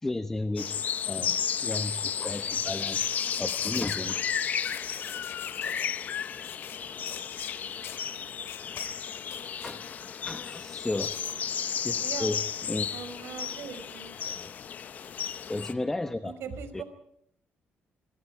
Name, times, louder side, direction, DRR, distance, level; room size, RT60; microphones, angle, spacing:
voice 1, 0.0-0.8 1.1-3.0 3.4-4.2 9.6-11.2 11.8-12.9 14.2-14.5 14.9-15.0 15.3-16.3 16.7-16.8, left 2 dB, 10° left, 9 dB, 0.9 m, -34 dB
sound 1, 0.6-15.7, left 8 dB, 40° left, 0.8 m, -33 dB
sound 2, 2.6-4.0 4.6-5.9 6.4-6.8 7.1-7.5 7.8-8.0 8.4-8.9 9.2-9.8 11.0-11.3, left 10 dB, 70° left, 3.1 m, -42 dB
voice 2, 12.9-14.1 16.2-16.8, right 7 dB, 80° right, 10 dB, 5.0 m, -40 dB
27.5 x 25.0 x 4.9 m, 0.72 s
cardioid pair, 175°, 4 cm